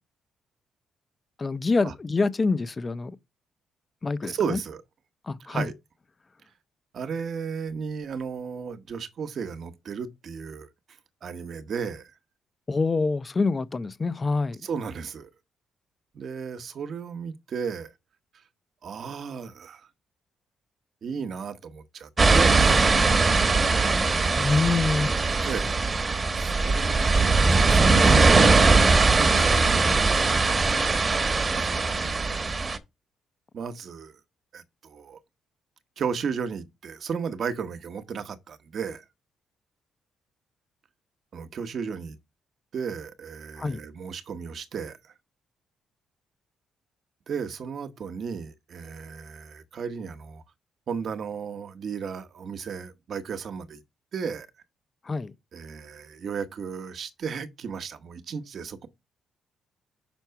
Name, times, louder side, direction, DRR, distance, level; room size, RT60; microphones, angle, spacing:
voice 1, 1.4-3.2 4.0-4.6 5.2-5.7 12.7-14.6 24.3-25.1 43.6-43.8 55.0-55.3, left 3 dB, 30° left, 0.6 m, -26 dB
voice 2, 4.2-4.8 5.5-5.7 6.9-10.7 11.2-12.1 14.6-15.3 16.1-17.9 18.8-19.9 21.0-23.0 24.9-25.8 26.3-30.3 31.5-32.2 33.5-34.2 34.5-35.2 36.0-39.0 41.3-42.2 42.7-45.1 47.3-50.4 50.9-53.8 54.1-54.5 55.5-58.9, right 6 dB, 55° right, 1.0 m, -34 dB
sound 1, 22.2-32.8, right 3 dB, 30° right, 1.1 m, -20 dB
6.0 x 4.6 x 5.7 m
cardioid pair, 90°, 0 cm